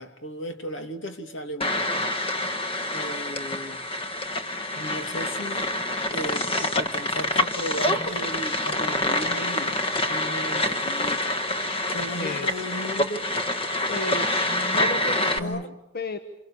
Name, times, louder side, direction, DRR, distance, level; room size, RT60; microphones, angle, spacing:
voice 1, 0.0-2.1 2.8-3.9 4.8-5.7 6.1-11.4 11.9-13.6 15.4-15.6, equal, 75° left, 7 dB, 2.5 m, -35 dB
sound 1, 1.6-15.4, left 1 dB, 30° left, 1.3 m, -26 dB
voice 2, 12.2-12.6 13.9-16.2, left 2 dB, 55° left, 7 dB, 1.4 m, -33 dB
28.0 x 27.5 x 7.1 m, 0.83 s
head